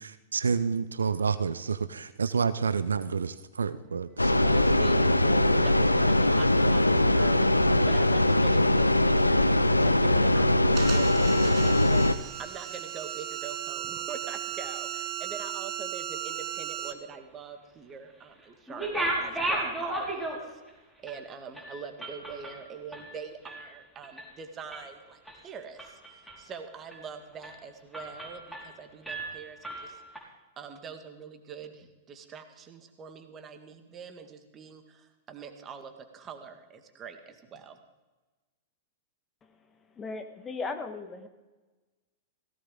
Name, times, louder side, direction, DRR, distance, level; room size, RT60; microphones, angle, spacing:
voice 1, 0.0-4.3, right 5 dB, 75° right, 14 dB, 0.5 m, -29 dB
sound 1, 4.2-12.1, left 1 dB, 90° left, 0.6 m, -22 dB
voice 2, 4.3-20.6 21.0-30.0 30.6-37.8, right 6 dB, 25° right, 7 dB, 1.9 m, -44 dB
sound 2, 10.7-16.9, right 11 dB, 45° right, 1.1 m, -36 dB
sound 3, 18.7-20.7 21.1-21.2 21.6-23.7 24.0-24.3 24.7-25.4 25.8-26.5 26.9-27.1 27.4-27.6 27.9-28.8 29.1-30.2, right 1 dB, ahead, 4.5 m, -35 dB
voice 3, 40.0-41.3, left 4 dB, 20° left, 7 dB, 1.5 m, -36 dB
17.5 x 16.0 x 3.8 m, 1.2 s
figure-of-eight pair, 100°, 0 cm